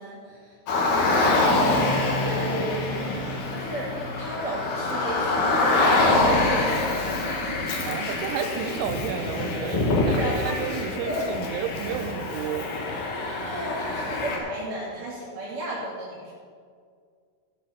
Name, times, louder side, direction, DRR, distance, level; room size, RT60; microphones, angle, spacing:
voice 1, 0.0-1.8 2.2-3.1 3.5-6.9 10.2-11.3 13.4-16.3, right 1 dB, 50° right, -7 dB, 3.3 m, -34 dB
Car, 0.7-14.4, left 2 dB, 65° left, 2.2 m, -25 dB
voice 2, 7.8-12.7, right 8 dB, 80° right, 8 dB, 2.9 m, -32 dB
15.5 x 6.8 x 5.7 m, 2.1 s
omnidirectional pair, 5.9 m